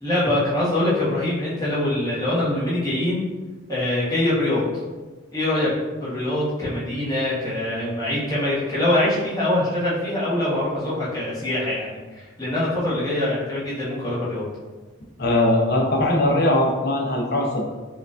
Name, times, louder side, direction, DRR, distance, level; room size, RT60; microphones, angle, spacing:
voice 1, 0.0-3.2 3.7-4.6 5.3-5.7 6.0-14.4, left 1 dB, 15° left, -9 dB, 1.0 m, -24 dB
voice 2, 15.2-17.7, left 1 dB, 50° left, -1 dB, 0.6 m, -20 dB
4.5 x 2.4 x 2.5 m, 1.3 s
head